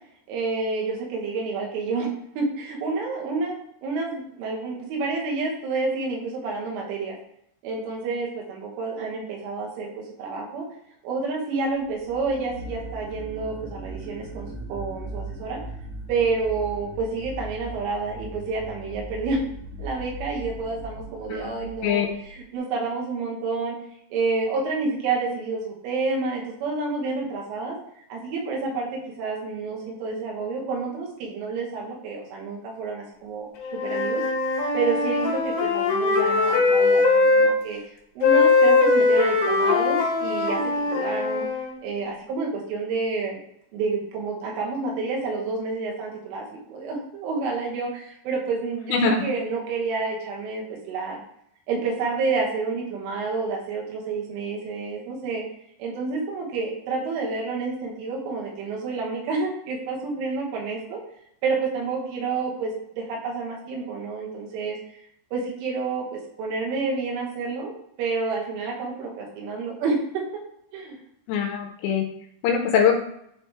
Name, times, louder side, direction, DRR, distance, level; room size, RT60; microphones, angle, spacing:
voice 1, 0.3-2.1 2.4-7.2 7.6-10.7 11.0-15.6 16.1-19.4 19.8-23.8 24.1-27.8 28.1-34.2 34.7-37.8 38.2-41.5 41.8-43.4 43.7-51.2 51.7-55.4 55.8-61.0 61.4-64.8 65.3-67.7 68.0-70.3 70.7-71.0, right 4 dB, 85° right, -2 dB, 3.8 m, -29 dB
sound 1, 11.8-22.5, right 1 dB, 65° right, 1.8 m, -39 dB
Wind instrument woodwind instrument, 33.6-37.5 38.2-41.7, left 3 dB, 65° left, 2.7 m, -21 dB
voice 2, 48.9-49.2 71.3-72.0 72.4-73.0, left 6 dB, 80° left, 2 dB, 2.8 m, -22 dB
9.8 x 3.4 x 3.0 m, 0.73 s
omnidirectional pair, 5.5 m